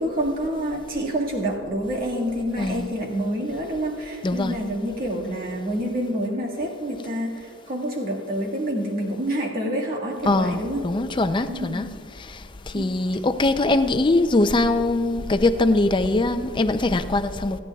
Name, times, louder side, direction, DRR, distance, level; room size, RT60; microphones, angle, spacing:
voice 1, 0.0-10.8 11.5-11.9 12.7-13.0, right 1 dB, 45° right, 1.8 m, -27 dB
voice 2, 2.6-2.9 4.2-4.6 10.3-11.9 12.3-12.4 12.7-17.6, left 2 dB, 25° left, 0.4 m, -22 dB
27.5 x 9.7 x 2.3 m
head